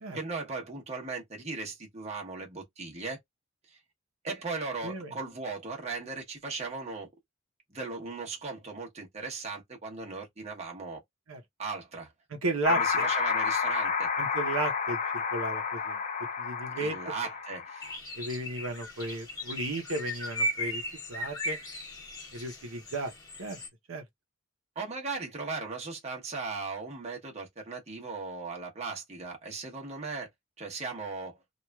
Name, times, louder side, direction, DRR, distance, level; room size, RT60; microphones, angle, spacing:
voice 1, 0.1-3.2 3.7-3.8 4.2-7.1 7.7-11.0 11.6-12.1 12.6-14.1 16.8-17.9 24.7-30.3 30.6-31.4, right 4 dB, 30° right, 0.9 m, -37 dB
voice 2, 12.4-13.0 14.2-16.0 16.4-17.0 18.2-20.8 21.1-21.6 22.3-23.1 23.4-23.6 23.9-24.0, right 2 dB, 85° right, 0.7 m, -34 dB
sound 1, 12.6-18.0, left 6 dB, 35° left, 0.4 m, -30 dB
sound 2, 17.8-23.7, equal, 20° left, 1.0 m, -37 dB
3.0 x 2.4 x 2.2 m
head